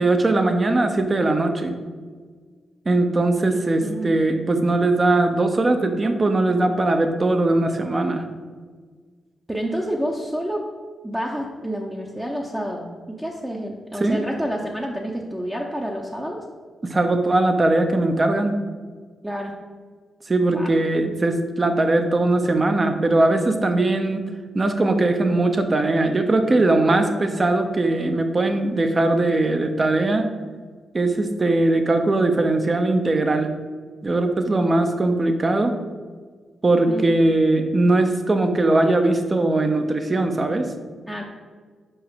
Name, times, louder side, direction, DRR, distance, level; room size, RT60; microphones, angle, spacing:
voice 1, 0.0-1.8 2.9-8.3 14.0-14.2 16.8-18.6 20.3-24.2 24.5-30.3 30.9-33.5 34.0-35.8 36.6-40.7, right 2 dB, 35° right, 6 dB, 0.9 m, -20 dB
voice 2, 3.8-4.1 9.5-10.6 11.0-16.4 19.2-19.5 20.5-20.7 36.9-37.1 41.1-41.2, equal, 10° right, -2 dB, 0.9 m, -29 dB
5.5 x 4.9 x 5.7 m, 1.5 s
cardioid pair, 70°, 0 cm